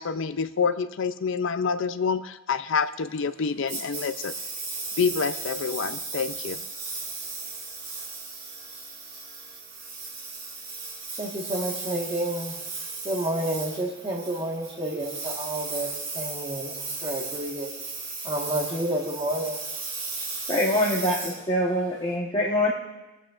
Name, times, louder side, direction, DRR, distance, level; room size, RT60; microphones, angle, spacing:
voice 1, 0.0-4.3 5.0-6.6, left 5 dB, 60° left, 12 dB, 0.5 m, -27 dB
Engine, 3.7-22.1, right 4 dB, 55° right, 3.2 m, -36 dB
voice 2, 11.2-12.5 13.0-15.9 16.1-17.7 18.2-19.6, right 1 dB, 25° right, -1 dB, 1.5 m, -30 dB
voice 3, 20.5-22.7, left 1 dB, 25° left, -5 dB, 1.2 m, -24 dB
21.0 x 8.4 x 2.5 m, 1.1 s
head